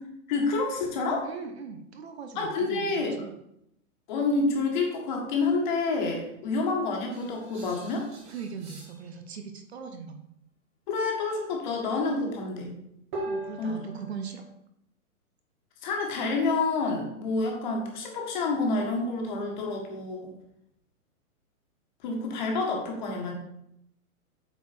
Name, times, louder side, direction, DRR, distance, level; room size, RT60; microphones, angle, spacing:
voice 1, 0.3-1.3 2.3-3.2 4.1-8.1 10.9-12.8 13.6-13.8 15.8-20.3 22.0-23.3, left 3 dB, 30° left, 1 dB, 1.6 m, -28 dB
voice 2, 1.2-3.3 8.3-10.2 13.3-14.4, right 6 dB, 45° right, 6 dB, 0.8 m, -40 dB
sound 1, 7.1-9.1 13.1-14.5, right 1 dB, 15° right, 1.1 m, -39 dB
8.0 x 4.6 x 4.3 m, 0.78 s
hypercardioid pair, 165°, 44 cm